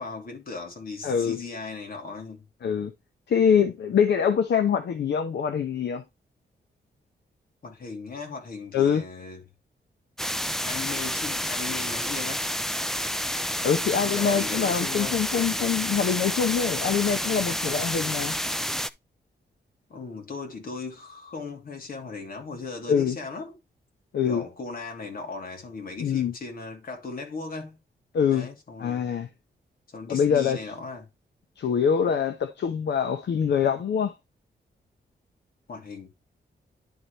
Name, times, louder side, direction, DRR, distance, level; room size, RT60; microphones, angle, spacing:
voice 1, 0.0-2.4 7.6-9.4 10.6-12.5 14.1-15.2 19.9-23.6 24.2-27.8 28.3-29.0 29.9-31.1 35.7-36.1, left 4 dB, 55° left, 2.7 m, -37 dB
voice 2, 1.0-1.4 2.6-2.9 3.3-6.0 8.7-9.0 13.6-18.3 22.9-23.2 24.1-24.4 26.0-26.3 28.1-28.5 28.8-29.3 30.1-30.6 31.6-34.1, left 7 dB, 75° left, 0.9 m, -24 dB
sound 1, 10.2-18.9, equal, ahead, 0.4 m, -29 dB
11.0 x 4.1 x 3.3 m
wide cardioid pair, 140°, 18 cm